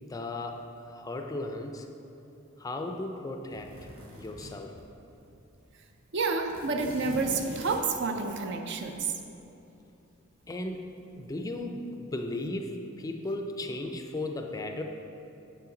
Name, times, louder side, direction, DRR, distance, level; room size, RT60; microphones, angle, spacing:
voice 1, 0.0-1.9 2.6-3.7 4.2-4.7 10.5-14.8, left 2 dB, 15° left, 4 dB, 0.4 m, -36 dB
sound 1, 3.5-5.2 5.5-5.6 5.9-9.0 10.4-10.9 11.3-11.6, equal, 80° right, 1.2 m, -44 dB
voice 2, 6.1-9.1, right 4 dB, 60° right, 5 dB, 0.5 m, -29 dB
7.0 x 5.6 x 3.8 m, 2.8 s
head